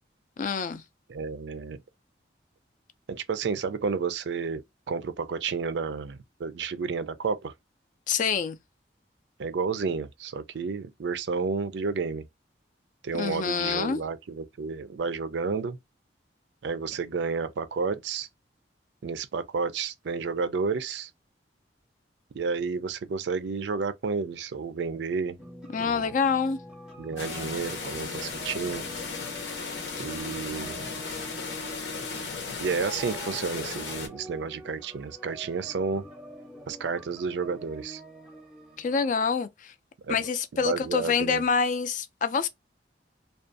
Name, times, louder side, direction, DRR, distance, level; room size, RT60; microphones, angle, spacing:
voice 1, 0.4-0.8 8.1-8.6 13.1-14.0 25.7-26.6 30.0-30.1 38.8-39.7 40.1-42.5, left 5 dB, 45° left, 0.3 m, -26 dB
voice 2, 1.1-1.8 3.1-4.6 4.9-7.5 9.4-12.2 13.0-15.8 16.6-18.3 19.0-21.1 22.3-25.4 25.8-26.0 27.0-28.8 30.0-30.8 32.6-36.0 36.7-38.0 40.1-40.3 40.6-41.4, right 5 dB, 70° right, 0.4 m, -31 dB
sound 1, 25.4-39.1, right 1 dB, 5° right, 0.6 m, -45 dB
sound 2, 27.2-34.1, left 4 dB, 75° left, 0.7 m, -36 dB
2.5 x 2.2 x 2.5 m
head